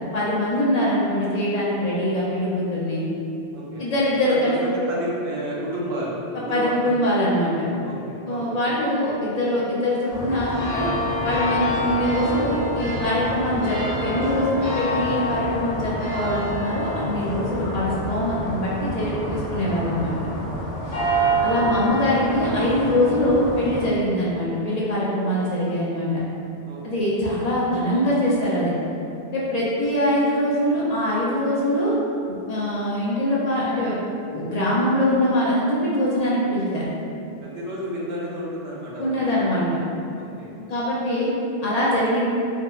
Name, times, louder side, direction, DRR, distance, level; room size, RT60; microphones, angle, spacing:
voice 1, 0.1-3.0 3.8-4.6 6.5-7.6 8.3-10.9 11.2-20.1 21.4-26.2 26.8-28.7 29.3-31.9 32.3-34.0 34.3-36.9 39.0-39.8 40.7-41.3 41.6-42.3, left 1 dB, 60° left, -7 dB, 0.4 m, -23 dB
voice 2, 3.5-3.9 4.3-6.8 7.8-8.4 20.9-21.3 26.7-27.1 37.4-39.4 40.1-40.5, equal, 65° right, -6 dB, 0.8 m, -31 dB
sound 1, 10.1-23.9, equal, 80° left, 0.9 m, -27 dB
3.4 x 2.1 x 2.3 m, 2.7 s
omnidirectional pair, 1.2 m